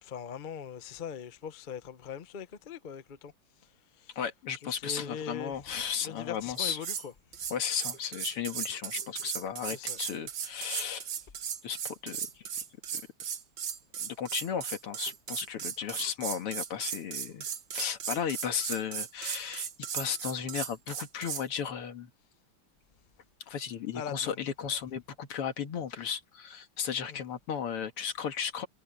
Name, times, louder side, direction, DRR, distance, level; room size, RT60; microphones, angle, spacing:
voice 1, 0.0-3.3 3.6-4.2 4.6-5.6 6.0-7.5 9.7-10.0 23.9-24.4 27.1-27.2, left 7 dB, 55° left, 0.5 m, -41 dB
voice 2, 4.2-6.8 7.5-11.1 11.6-12.5 12.9-13.0 14.0-22.1 23.5-28.7, left 8 dB, 90° left, 2.6 m, -35 dB
sound 1, 6.6-7.1 7.3-21.5, right 8 dB, 65° right, 2.2 m, -36 dB
omnidirectional pair, 2.4 m